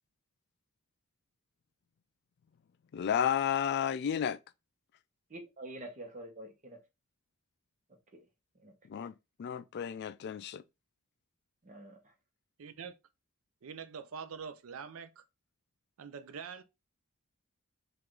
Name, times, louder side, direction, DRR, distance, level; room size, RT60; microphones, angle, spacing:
voice 1, 2.9-4.4 8.9-9.1 9.4-10.6, left 8 dB, 50° left, 0.3 m, -32 dB
voice 2, 5.3-6.8 8.1-8.2 8.6-8.7 11.6-12.1, right 1 dB, 35° right, 1.0 m, -47 dB
voice 3, 12.6-12.9 13.6-15.2 16.0-16.6, right 6 dB, 70° right, 0.5 m, -44 dB
4.8 x 2.5 x 3.7 m
head